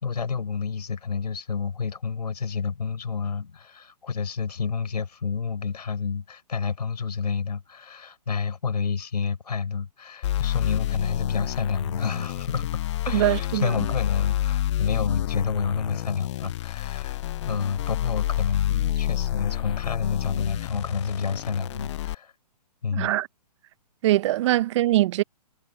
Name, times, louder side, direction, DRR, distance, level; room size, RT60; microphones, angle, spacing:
voice 1, 0.0-17.2 17.4-22.3 22.8-23.1 24.5-24.6, left 5 dB, 80° left, 4.6 m, -29 dB
sound 1, 10.2-22.1, left 14 dB, 45° left, 0.5 m, -29 dB
voice 2, 13.1-13.7 22.9-23.3 24.0-25.2, right 15 dB, 45° right, 1.2 m, -22 dB
hypercardioid pair, 130°, 21 cm